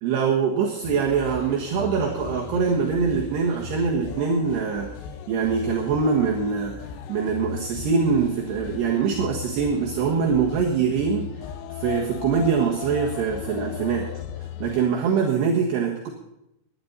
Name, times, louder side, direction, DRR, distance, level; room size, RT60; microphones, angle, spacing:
voice 1, 0.0-4.9 5.3-6.8 7.1-11.3 11.7-14.1 14.6-16.1, right 6 dB, 65° right, -2 dB, 3.4 m, -23 dB
sound 1, 0.8-14.9, left 9 dB, 80° left, 2.9 m, -37 dB
20.0 x 10.5 x 4.1 m, 0.83 s
omnidirectional pair, 5.7 m